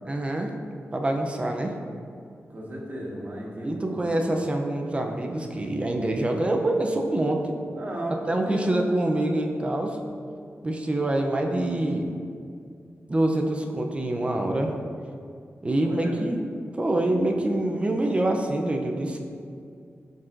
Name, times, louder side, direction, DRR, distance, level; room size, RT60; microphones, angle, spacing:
voice 1, 0.1-0.5 0.9-1.8 3.6-7.6 8.3-10.0 10.6-12.1 13.1-14.7 15.6-16.4 16.8-19.2, right 1 dB, 25° right, 2 dB, 0.5 m, -25 dB
voice 2, 2.5-4.1 7.7-8.8 15.8-16.3, right 1 dB, 40° right, -3 dB, 1.3 m, -34 dB
12.0 x 4.0 x 2.5 m, 2.4 s
wide cardioid pair, 145°, 5 cm